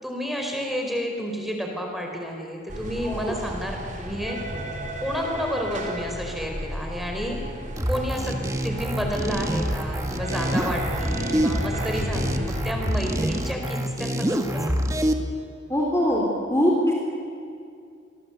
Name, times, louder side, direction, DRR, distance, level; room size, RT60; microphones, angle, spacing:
voice 1, 0.0-4.4 5.0-7.4 7.9-8.4 8.6-14.9, equal, ahead, 1 dB, 4.6 m, -30 dB
sound 1, 2.7-13.5, equal, 40° right, 4.2 m, -33 dB
voice 2, 3.0-3.3 15.7-16.7, equal, 15° left, -1 dB, 3.7 m, -23 dB
sound 2, 7.8-15.1, equal, 15° right, 1.7 m, -26 dB
28.5 x 23.5 x 8.2 m, 2.4 s
head